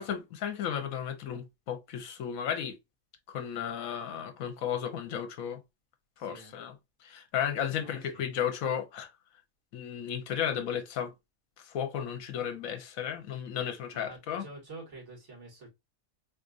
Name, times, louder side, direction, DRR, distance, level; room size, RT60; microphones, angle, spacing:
voice 1, 0.0-2.8 3.3-5.6 6.2-6.7 7.0-9.1 9.7-11.1 11.6-14.4, left 9 dB, 80° left, 1.1 m, -34 dB
voice 2, 6.2-6.6 7.8-8.3 13.9-15.7, right 2 dB, 55° right, 2.1 m, -48 dB
4.2 x 2.4 x 2.4 m
omnidirectional pair, 1.5 m